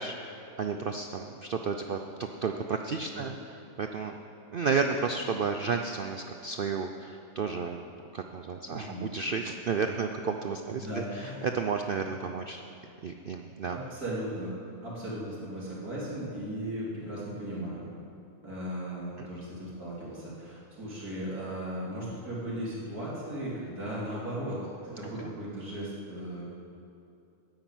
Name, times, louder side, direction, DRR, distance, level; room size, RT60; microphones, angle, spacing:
voice 1, 0.0-2.0 2.4-3.3 3.8-4.1 4.5-7.8 8.1-12.6 13.0-13.8 19.2-19.3, right 5 dB, 65° right, 5 dB, 0.5 m, -32 dB
voice 2, 8.7-9.1 10.6-11.5 11.9-12.0 13.7-14.5 14.8-17.8 18.4-26.5, right 1 dB, 90° right, -7 dB, 3.9 m, -37 dB
9.5 x 9.1 x 9.0 m, 2.7 s
omnidirectional pair, 1.6 m